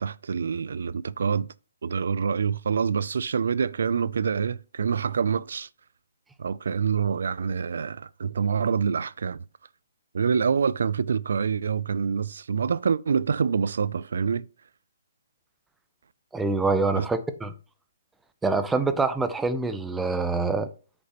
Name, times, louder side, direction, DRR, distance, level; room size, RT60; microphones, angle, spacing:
voice 1, 0.0-1.5 1.8-5.7 6.4-9.4 10.1-14.5 17.0-17.1, right 6 dB, 65° right, 0.3 m, -26 dB
voice 2, 16.3-17.5 18.4-20.7, right 3 dB, 5° right, 0.5 m, -25 dB
7.9 x 5.3 x 2.9 m
hypercardioid pair, 160°, 0 cm